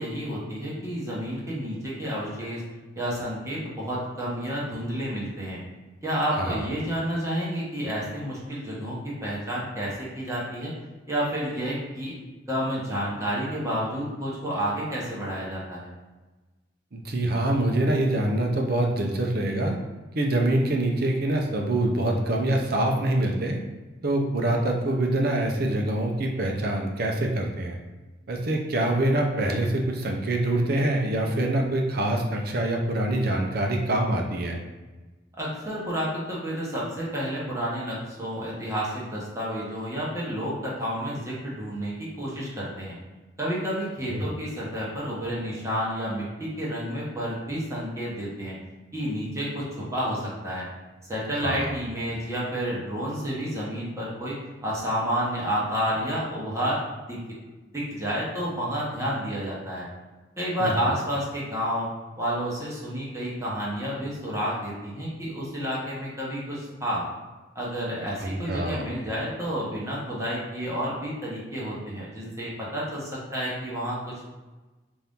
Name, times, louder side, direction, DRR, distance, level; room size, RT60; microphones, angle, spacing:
voice 1, 0.0-2.6 2.9-5.6 6.0-10.7 11.1-12.1 12.5-15.9 35.4-43.0 43.4-48.5 48.9-50.7 51.1-54.3 54.6-56.8 57.1-57.2 57.7-59.9 60.4-61.9 62.2-67.0 67.5-74.2, equal, 15° right, -7 dB, 1.0 m, -30 dB
voice 2, 6.4-6.7 16.9-19.8 20.1-23.6 24.0-27.8 28.3-34.6 44.1-44.4 51.4-51.7 60.6-60.7 68.2-68.9, right 1 dB, 55° right, 2 dB, 0.6 m, -25 dB
4.2 x 2.7 x 3.5 m, 1.2 s
head